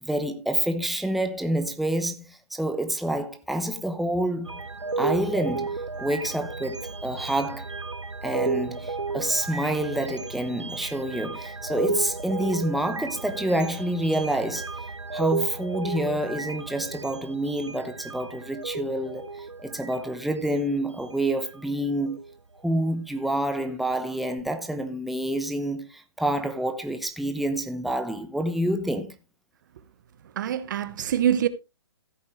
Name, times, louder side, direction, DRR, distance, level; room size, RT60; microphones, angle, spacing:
voice 1, 0.0-4.6 5.0-7.7 8.2-14.7 15.1-22.2 22.6-29.1, right 1 dB, ahead, 1.0 m, -28 dB
sound 1, 4.4-21.6 22.1-22.3 24.4-24.5, right 4 dB, 85° right, 0.9 m, -33 dB
voice 2, 30.4-31.5, right 10 dB, 45° right, 1.1 m, -24 dB
15.0 x 8.7 x 3.2 m
figure-of-eight pair, 130°, 15 cm